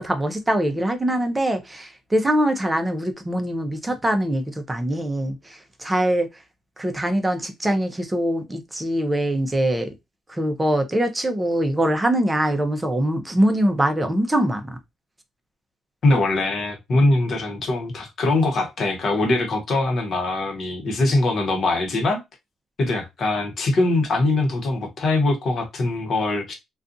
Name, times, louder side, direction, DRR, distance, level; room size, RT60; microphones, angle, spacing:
voice 1, 0.0-6.3 6.8-9.9 10.3-14.8, right 1 dB, 15° right, 0.6 m, -23 dB
voice 2, 16.0-22.2 22.8-26.5, left 2 dB, 55° left, 0.9 m, -22 dB
2.5 x 2.3 x 2.5 m
cardioid pair, 90°, 0 cm